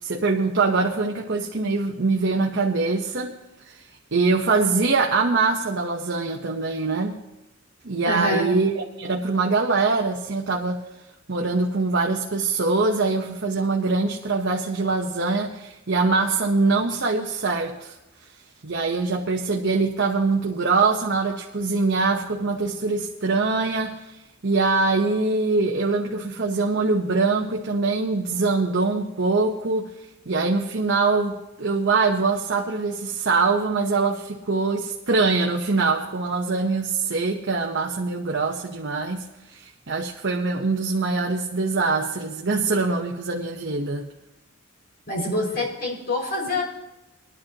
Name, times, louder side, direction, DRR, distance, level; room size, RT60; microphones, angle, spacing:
voice 1, 0.0-3.3 3.6-3.8 4.1-7.2 7.8-8.7 9.0-10.8 11.3-18.0 18.6-24.0 24.4-29.9 30.3-39.2 39.5-44.1, right 3 dB, 55° right, 1 dB, 1.0 m, -23 dB
voice 2, 8.0-8.5 45.1-46.6, left 1 dB, 50° left, -3 dB, 5.5 m, -25 dB
22.0 x 11.5 x 2.9 m, 0.98 s
head